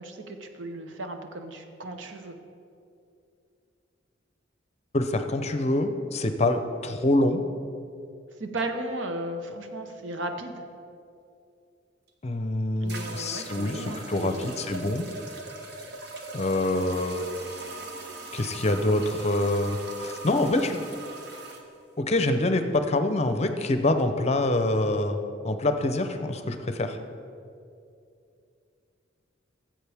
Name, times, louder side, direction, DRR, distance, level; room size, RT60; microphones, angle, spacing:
voice 1, 0.0-2.4 8.4-10.6 12.8-14.6, right 1 dB, 85° right, 6 dB, 0.9 m, -35 dB
voice 2, 4.9-7.4 12.2-15.1 16.3-17.3 18.3-20.8 22.0-25.2 25.4-27.0, left 2 dB, 35° left, 7 dB, 0.6 m, -25 dB
sound 1, 12.1-12.2 12.9-21.6, right 3 dB, 60° right, 1.1 m, -40 dB
15.5 x 7.6 x 3.5 m, 2.5 s
head